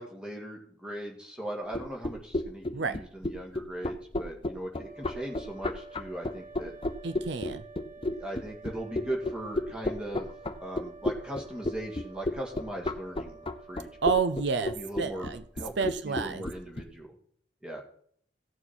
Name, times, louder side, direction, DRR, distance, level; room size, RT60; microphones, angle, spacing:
voice 1, 0.0-6.7 8.1-10.3 10.6-13.9 14.6-15.3 15.6-15.7 16.0-17.1 17.6-17.8, right 1 dB, 5° right, 0 dB, 2.0 m, -39 dB
sound 1, 1.7-16.8, left 2 dB, 30° left, 0.7 m, -32 dB
sound 2, 4.7-15.6, right 4 dB, 45° right, 4.1 m, -50 dB
voice 2, 7.0-7.6 14.0-15.4 15.8-16.4, right 5 dB, 65° right, 12 dB, 0.6 m, -29 dB
16.0 x 7.0 x 4.3 m, 0.62 s
head